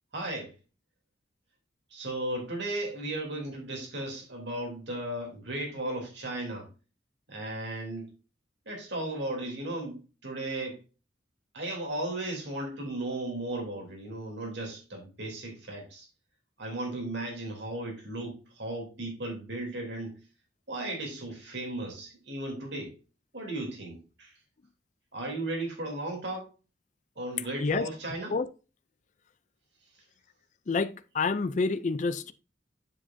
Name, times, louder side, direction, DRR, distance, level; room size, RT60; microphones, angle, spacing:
voice 1, 0.1-0.5 1.9-6.7 7.3-8.1 8.6-10.8 11.5-16.1 16.6-20.2 20.7-23.0 23.3-24.4 25.1-26.5 27.2-28.4, right 1 dB, 70° right, 3.2 m, -35 dB
voice 2, 30.7-32.3, left 4 dB, 40° left, 0.4 m, -28 dB
7.5 x 7.4 x 2.6 m
head